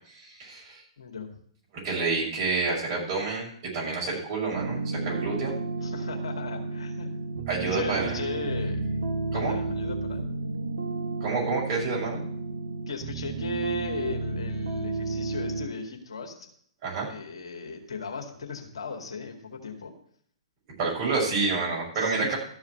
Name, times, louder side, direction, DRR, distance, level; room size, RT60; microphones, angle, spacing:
voice 1, 0.1-0.8 1.8-3.5 3.7-5.5 7.5-8.2 9.3-9.5 11.2-12.2 16.8-17.1 20.8-22.4, right 4 dB, 40° right, -3 dB, 6.3 m, -28 dB
voice 2, 1.0-1.3 5.8-7.2 7.6-8.8 9.3-10.2 12.9-16.5 17.1-20.0 21.9-22.3, left 4 dB, 70° left, 2 dB, 2.2 m, -36 dB
sound 1, 4.5-15.7, right 3 dB, 65° right, 1.3 m, -32 dB
13.5 x 4.8 x 8.9 m, 0.63 s
figure-of-eight pair, 120°, 3 cm